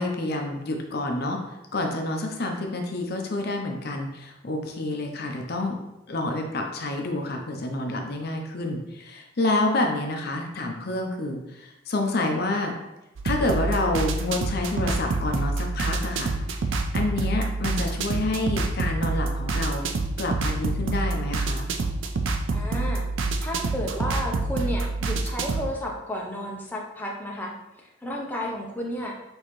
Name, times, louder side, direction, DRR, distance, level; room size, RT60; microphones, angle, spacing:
voice 1, 0.0-1.4 1.7-5.8 6.1-12.7 13.2-16.3 16.9-19.8 20.2-21.7, left 2 dB, 50° left, 2 dB, 0.6 m, -28 dB
sound 1, 13.2-25.7, right 3 dB, 70° right, 0.5 m, -27 dB
voice 2, 22.5-23.1 23.4-29.2, equal, 10° left, -2 dB, 0.7 m, -32 dB
6.2 x 2.8 x 3.1 m, 0.94 s
head